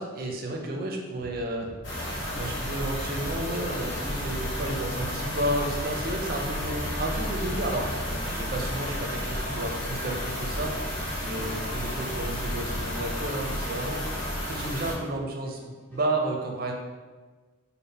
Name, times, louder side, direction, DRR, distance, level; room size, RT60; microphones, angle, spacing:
voice 1, 0.0-1.7 2.4-16.7, right 1 dB, 45° right, 1 dB, 0.5 m, -32 dB
sound 1, 1.1-16.2, equal, 10° left, 1.2 m, -47 dB
sound 2, 1.8-14.9, left 1 dB, 65° left, 0.9 m, -32 dB
sound 3, 2.3-13.0, equal, 30° left, 0.5 m, -41 dB
3.5 x 2.0 x 4.1 m, 1.3 s
head